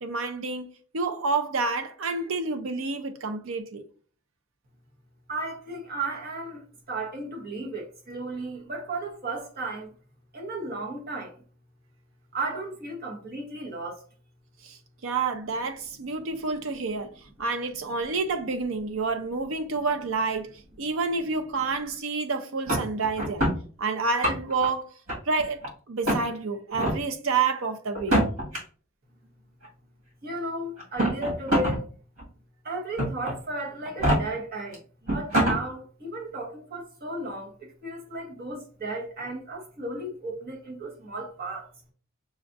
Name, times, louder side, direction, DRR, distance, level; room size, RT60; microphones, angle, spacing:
voice 1, 0.0-3.8 14.6-14.8 15.0-17.1 17.4-23.5 23.8-24.9 25.3-28.2, right 4 dB, 65° right, 0.6 m, -29 dB
voice 2, 5.3-9.9 10.3-11.3 12.3-14.0 30.2-31.8 32.6-41.7, right 2 dB, 45° right, 1.1 m, -34 dB
sound 1, 22.7-23.6 24.0-24.7 25.1-25.7 26.0-26.2 26.7-27.0 27.9-28.6 29.6-29.7 30.8-31.8 32.2-32.3 33.0-33.3 33.8-34.2 34.7-34.8 35.1-35.6, right 1 dB, 90° right, 2.0 m, -24 dB
6.2 x 2.4 x 2.6 m
head